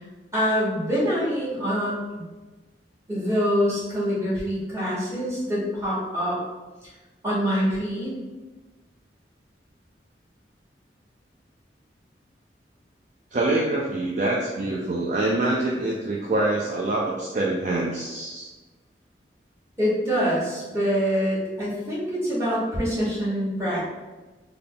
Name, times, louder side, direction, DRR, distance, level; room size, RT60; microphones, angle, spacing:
voice 1, 0.3-2.2 3.1-6.4 6.8-6.9 7.2-8.2 19.8-23.8, equal, 15° right, -10 dB, 1.4 m, -25 dB
voice 2, 13.3-18.5, right 2 dB, 40° right, -3 dB, 0.4 m, -25 dB
3.5 x 2.3 x 3.8 m, 1.2 s
head